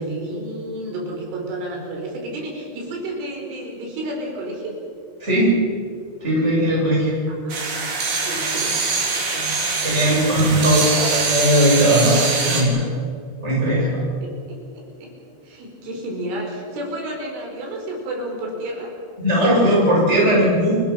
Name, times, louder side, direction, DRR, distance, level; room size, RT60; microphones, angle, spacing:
voice 1, 0.0-4.7 7.3-7.7 8.0-10.7 14.2-15.1 15.4-18.9, right 1 dB, 80° right, 0 dB, 7.4 m, -32 dB
voice 2, 5.2-5.6 6.2-7.1 9.8-12.8 13.4-14.0 19.2-20.8, right 1 dB, 15° right, -4 dB, 7.7 m, -18 dB
sound 1, 7.5-12.6, right 4 dB, 55° right, 5.5 m, -23 dB
29.5 x 20.0 x 5.9 m, 2.3 s
omnidirectional pair, 5.6 m